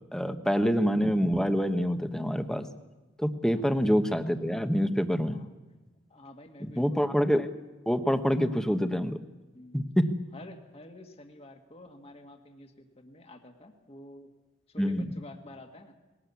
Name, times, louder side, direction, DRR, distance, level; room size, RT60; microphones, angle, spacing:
voice 1, 0.1-2.6 3.2-5.4 6.8-7.5 7.9-9.2 9.7-10.1 14.8-15.1, equal, 5° left, 8 dB, 1.1 m, -26 dB
voice 2, 6.1-7.2 9.5-9.8 10.3-14.3 14.7-15.9, left 1 dB, 35° left, 4 dB, 1.8 m, -49 dB
20.5 x 18.0 x 8.3 m, 1.2 s
head